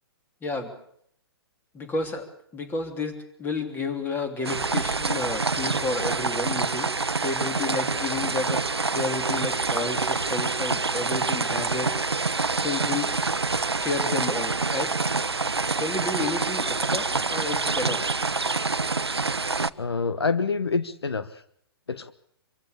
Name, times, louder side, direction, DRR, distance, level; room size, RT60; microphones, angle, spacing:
voice 1, 0.4-0.7 1.7-2.3 2.5-6.9 7.2-12.0 12.6-13.2 13.8-14.9 15.8-18.1, left 3 dB, 15° left, 7 dB, 3.3 m, -31 dB
sound 1, 4.4-19.7, right 4 dB, 90° right, 0.8 m, -26 dB
voice 2, 19.8-21.4 21.9-22.1, left 4 dB, 80° left, 13 dB, 1.2 m, -27 dB
26.0 x 15.5 x 8.5 m, 0.69 s
figure-of-eight pair, 120°, 13 cm